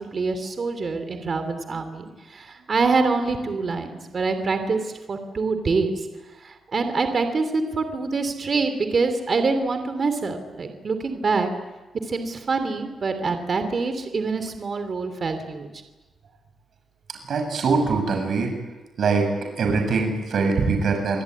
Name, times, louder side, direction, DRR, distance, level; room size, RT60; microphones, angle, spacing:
voice 1, 0.0-6.0 6.4-11.5 12.1-15.7, right 4 dB, 40° right, 8 dB, 3.1 m, -25 dB
voice 2, 17.3-18.5 19.0-19.3 19.6-21.2, right 4 dB, 60° right, 4 dB, 7.4 m, -22 dB
27.0 x 19.5 x 9.7 m, 1.2 s
cardioid pair, 125°, 0 cm